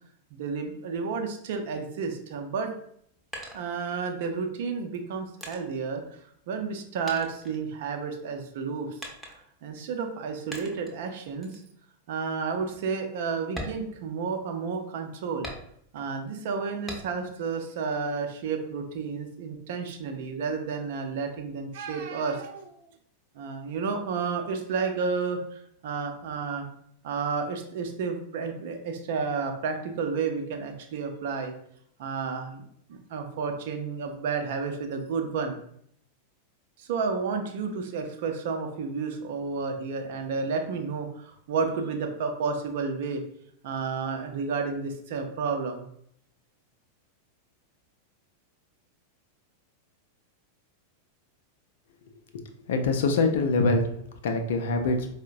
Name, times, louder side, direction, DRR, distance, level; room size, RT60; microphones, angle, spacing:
voice 1, 0.3-2.7 3.5-9.0 9.6-11.6 12.1-15.5 15.9-22.9 23.3-26.6 27.0-31.5 32.0-32.6 32.9-35.6 36.8-43.2 43.6-45.8, right 5 dB, 55° right, 5 dB, 0.5 m, -31 dB
sound 1, 2.8-4.3 4.9-6.8 7.1-8.2 9.0-9.7 10.5-11.0 11.4-11.7 12.1-12.2 12.7-12.8 13.4-14.6 15.4-16.1 16.9-17.4 17.8-18.7, equal, 5° left, 0.7 m, -42 dB
voice 2, 52.3-53.9 54.2-55.1, left 3 dB, 60° left, 6 dB, 0.4 m, -24 dB
4.5 x 2.1 x 2.5 m, 0.68 s
figure-of-eight pair, 90°, 0 cm